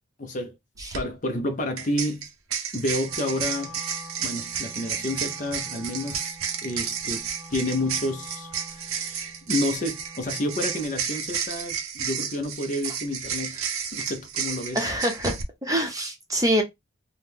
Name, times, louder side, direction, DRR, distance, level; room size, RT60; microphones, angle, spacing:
voice 1, 0.2-0.6 0.9-2.3 2.7-3.7 4.2-6.4 6.6-14.9, left 1 dB, 40° left, 0.5 m, -30 dB
sound 1, 0.8-1.0 1.8-15.4, right 7 dB, 90° right, 0.6 m, -32 dB
Wind instrument woodwind instrument, 3.0-11.0, equal, 90° left, 0.8 m, -46 dB
voice 2, 14.7-16.6, equal, 15° right, 0.7 m, -25 dB
2.9 x 2.1 x 3.4 m
head